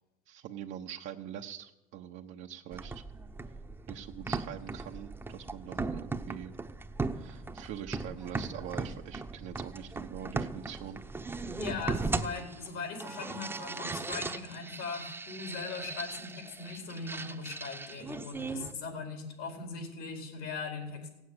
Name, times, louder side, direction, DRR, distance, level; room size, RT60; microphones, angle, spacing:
voice 1, 0.3-3.0 3.9-6.6 7.1-11.0 11.3-11.6, right 10 dB, 65° right, 2 dB, 1.0 m, -44 dB
sound 1, 2.7-18.7, right 3 dB, 10° right, 0.9 m, -38 dB
voice 2, 11.6-21.1, left 4 dB, 75° left, 4 dB, 4.5 m, -39 dB
16.5 x 8.3 x 9.7 m, 0.91 s
supercardioid pair, 105°, 21 cm